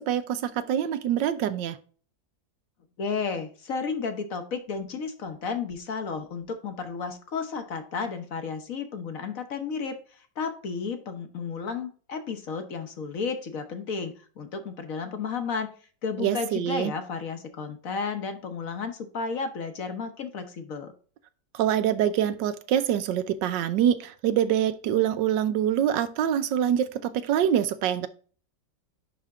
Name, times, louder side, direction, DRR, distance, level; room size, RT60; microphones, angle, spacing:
voice 1, 0.0-1.8 16.2-16.9 21.5-28.1, right 10 dB, 80° right, 12 dB, 1.4 m, -25 dB
voice 2, 3.0-15.7 16.0-20.9, left 5 dB, 55° left, 7 dB, 1.2 m, -33 dB
10.5 x 3.5 x 3.6 m, 0.40 s
omnidirectional pair, 1.9 m